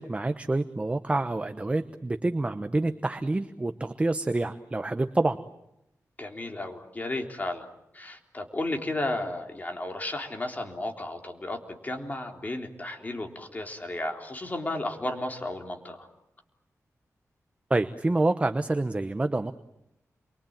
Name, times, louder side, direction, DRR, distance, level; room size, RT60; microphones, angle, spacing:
voice 1, 0.0-5.4 17.7-19.5, right 2 dB, 20° right, 9 dB, 1.0 m, -27 dB
voice 2, 6.2-7.7 7.9-16.1, left 2 dB, 30° left, 3 dB, 3.7 m, -33 dB
28.5 x 23.5 x 8.9 m, 0.83 s
wide cardioid pair, 105°, 6 cm